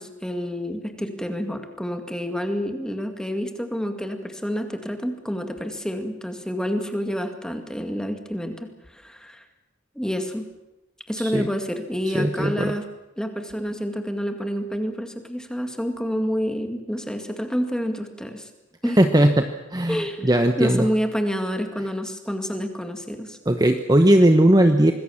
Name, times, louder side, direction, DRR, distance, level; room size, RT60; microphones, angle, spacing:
voice 1, 0.0-9.4 10.0-10.5 11.1-12.8 13.2-18.5 18.8-19.0 19.9-20.3 20.6-23.4, equal, 5° left, 6 dB, 2.2 m, -28 dB
voice 2, 11.2-11.5 12.1-12.7 19.0-20.9 23.5-24.9, right 1 dB, 20° right, 6 dB, 1.0 m, -18 dB
25.5 x 20.5 x 7.3 m, 0.99 s
head